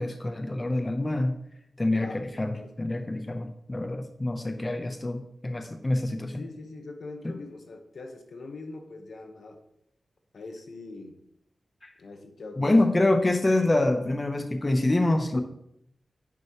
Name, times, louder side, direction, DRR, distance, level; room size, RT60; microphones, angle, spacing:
voice 1, 0.0-1.4 1.8-6.4 7.2-7.4 11.8-11.9 12.6-15.4, left 2 dB, 25° left, 5 dB, 0.7 m, -26 dB
voice 2, 6.3-9.6 10.3-11.2 12.0-12.8, left 3 dB, 75° left, 5 dB, 1.1 m, -42 dB
10.5 x 6.5 x 3.0 m, 0.77 s
wide cardioid pair, 115°, 0 cm